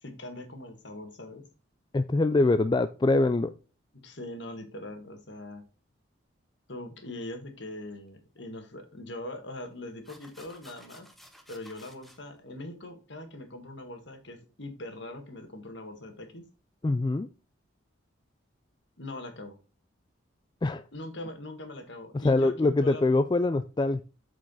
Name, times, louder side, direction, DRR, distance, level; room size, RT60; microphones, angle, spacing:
voice 1, 0.0-1.5 4.0-5.6 6.7-11.1 11.5-16.4 19.0-19.6 20.9-23.1, left 1 dB, 60° left, 1.8 m, -41 dB
voice 2, 1.9-3.5 16.8-17.3 20.6-20.8 22.1-24.0, left 2 dB, 20° left, 0.3 m, -24 dB
sound 1, 8.4-8.5 9.6-9.7 10.0-12.2, equal, ahead, 0.9 m, -54 dB
8.6 x 5.0 x 4.0 m
head